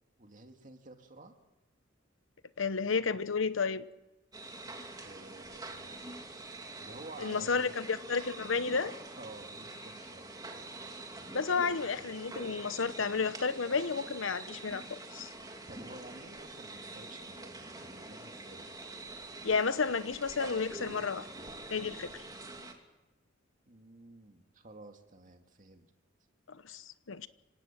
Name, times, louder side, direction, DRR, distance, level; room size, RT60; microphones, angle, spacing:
voice 1, 0.2-1.3 5.0-6.2 6.8-7.7 9.2-10.3 15.7-18.8 23.7-25.9, right 2 dB, 40° right, 5 dB, 2.3 m, -52 dB
voice 2, 2.6-3.8 7.2-8.9 11.3-15.3 19.4-21.3 21.7-22.1 26.5-27.3, left 5 dB, 80° left, 14 dB, 1.0 m, -32 dB
sound 1, 4.3-22.7, right 2 dB, 20° right, 2.8 m, -46 dB
25.5 x 17.5 x 7.5 m, 1.0 s
head